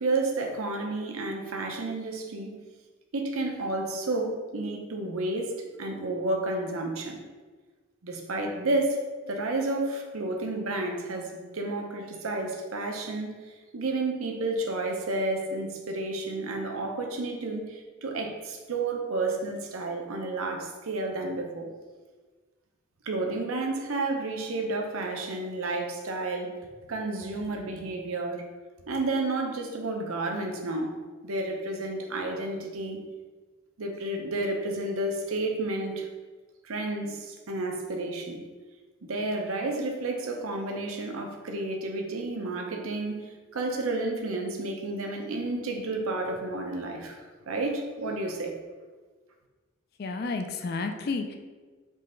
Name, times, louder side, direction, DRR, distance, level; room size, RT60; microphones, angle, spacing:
voice 1, 0.0-2.6 3.1-7.2 8.0-21.7 23.0-26.6 26.9-28.5 28.9-33.0 33.8-36.1 36.6-38.4 39.0-48.6, right 2 dB, 80° right, 3 dB, 0.7 m, -31 dB
voice 2, 50.0-51.4, left 3 dB, 45° left, 5 dB, 0.3 m, -31 dB
3.8 x 3.2 x 3.8 m, 1.4 s
head